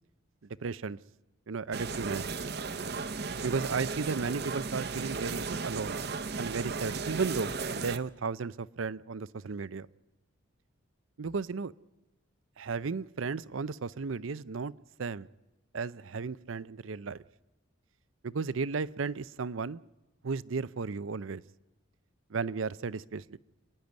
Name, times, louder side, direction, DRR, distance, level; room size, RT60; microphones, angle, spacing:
voice 1, 0.6-1.0 1.5-2.3 3.4-6.0 6.4-9.9 11.2-11.7 12.6-14.7 15.0-15.3 15.7-17.2 18.2-19.8 20.2-21.4 22.3-23.4, right 4 dB, 80° right, 0.6 m, -34 dB
sound 1, 1.7-8.0, right 4 dB, 50° right, 0.9 m, -35 dB
28.5 x 10.5 x 9.4 m
head